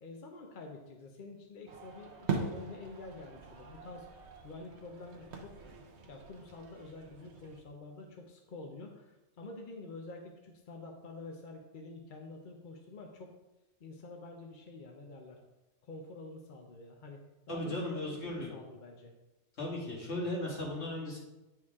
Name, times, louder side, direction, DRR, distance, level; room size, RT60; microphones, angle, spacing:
voice 1, 0.0-5.6 6.0-13.3 13.8-15.4 15.8-17.2 17.5-18.0 18.3-19.1, left 3 dB, 50° left, 2 dB, 0.8 m, -48 dB
sound 1, 1.7-7.6, right 4 dB, 70° right, 1.2 m, -42 dB
voice 2, 17.5-18.5 19.6-21.2, left 1 dB, 70° left, -3 dB, 2.1 m, -36 dB
9.2 x 4.6 x 3.6 m, 1.0 s
omnidirectional pair, 1.2 m